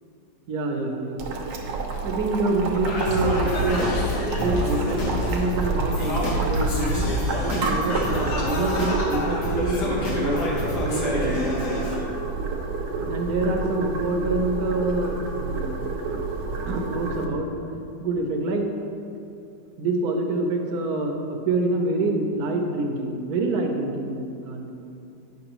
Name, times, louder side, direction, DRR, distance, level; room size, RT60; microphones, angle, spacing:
voice 1, 0.5-1.2 2.0-3.9 4.4-7.1 7.4-11.4 13.0-15.8 16.6-17.5 18.0-18.7 19.8-24.7, right 2 dB, 65° right, 2 dB, 1.1 m, -26 dB
Boiling, 1.2-17.3, right 3 dB, 90° right, 1.5 m, -29 dB
Singing, 2.8-12.0, left 1 dB, 70° left, 1.7 m, -27 dB
9.6 x 5.8 x 3.0 m, 2.6 s
omnidirectional pair, 1.9 m